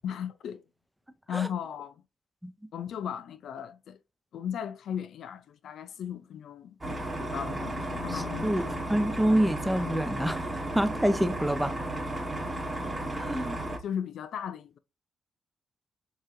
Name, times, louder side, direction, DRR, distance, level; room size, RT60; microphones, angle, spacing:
voice 1, 0.0-0.6 1.3-2.0 2.7-4.0 4.3-8.8 13.8-14.8, left 9 dB, 75° left, 0.4 m, -36 dB
sound 1, 6.8-13.8, right 1 dB, 20° right, 1.0 m, -34 dB
voice 2, 8.1-8.6 8.9-10.5 10.7-11.7 13.1-13.6, right 1 dB, 5° right, 0.4 m, -27 dB
4.6 x 2.8 x 3.0 m
wide cardioid pair, 160°, 0 cm